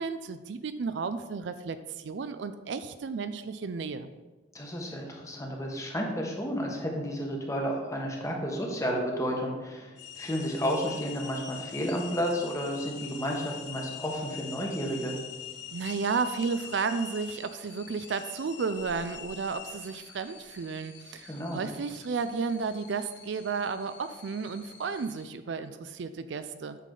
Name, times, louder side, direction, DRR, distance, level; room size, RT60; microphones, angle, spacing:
voice 1, 0.0-4.1 15.7-26.8, right 5 dB, 65° right, 11 dB, 0.4 m, -33 dB
voice 2, 4.5-15.2 21.3-21.6, equal, 15° left, 0 dB, 1.2 m, -32 dB
sound 1, 10.0-25.3, left 8 dB, 65° left, 0.9 m, -45 dB
8.2 x 5.8 x 3.8 m, 1.2 s
head